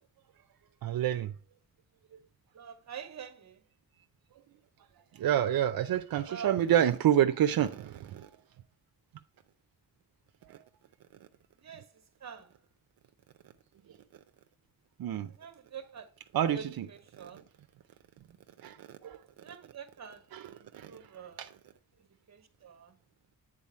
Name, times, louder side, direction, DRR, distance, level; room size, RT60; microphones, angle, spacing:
voice 1, 0.8-1.3 5.1-8.3 10.4-10.6 15.0-15.3 16.3-16.9 17.2-17.3 18.6-19.2 20.3-20.9 21.4-21.5, right 10 dB, 85° right, 0.5 m, -28 dB
voice 2, 2.6-3.5 6.3-6.5 11.6-11.8 12.2-12.4 15.4-16.0 16.5-16.6 17.2-17.4 19.4-20.2 20.9-21.3 22.6-22.9, right 7 dB, 50° right, 1.0 m, -44 dB
8.8 x 4.1 x 4.2 m
wide cardioid pair, 160°, 35 cm